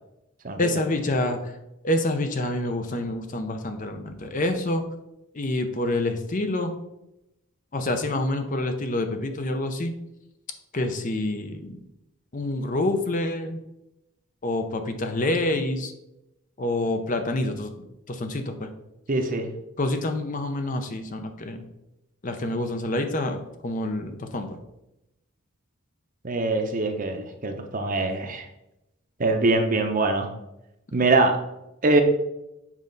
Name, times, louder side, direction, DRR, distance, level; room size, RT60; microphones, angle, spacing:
voice 1, 0.6-1.5 1.8-4.8 5.3-6.7 7.7-9.9 10.7-11.8 12.3-13.6 14.4-15.9 16.6-17.7 18.1-18.7 19.8-21.6 22.2-24.6, left 1 dB, 35° left, 6 dB, 0.6 m, -27 dB
voice 2, 19.1-19.5 26.2-28.5 29.2-30.3 30.9-31.3 31.8-32.0, right 2 dB, 40° right, 5 dB, 0.7 m, -23 dB
7.4 x 5.3 x 3.9 m, 0.90 s
head